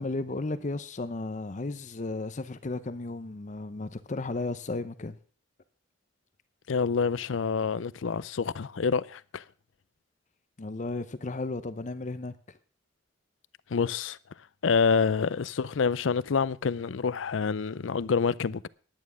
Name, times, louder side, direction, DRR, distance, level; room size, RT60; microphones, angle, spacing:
voice 1, 0.0-5.2 10.6-12.3, left 2 dB, 40° left, 0.6 m, -34 dB
voice 2, 6.7-9.4 13.7-14.2 14.6-18.7, left 5 dB, 85° left, 0.5 m, -27 dB
10.5 x 9.5 x 6.1 m
head